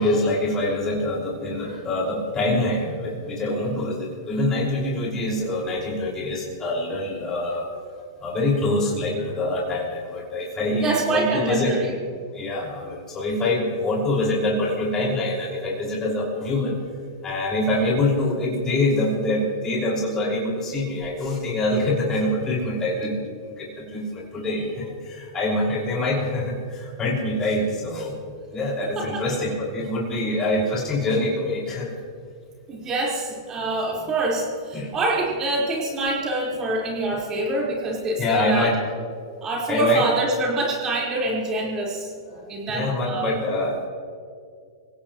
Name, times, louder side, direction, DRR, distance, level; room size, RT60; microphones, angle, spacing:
voice 1, 0.0-11.7 12.3-16.7 17.2-31.9 34.7-34.9 38.2-38.8 39.7-40.0 42.3-42.4 42.7-43.9, left 1 dB, 25° left, -3 dB, 5.4 m, -25 dB
voice 2, 10.8-11.9 29.0-29.2 32.7-38.8 39.4-43.3, right 2 dB, 25° right, -3 dB, 4.6 m, -25 dB
26.0 x 17.0 x 3.1 m, 2.2 s
hypercardioid pair, 115°, 2 cm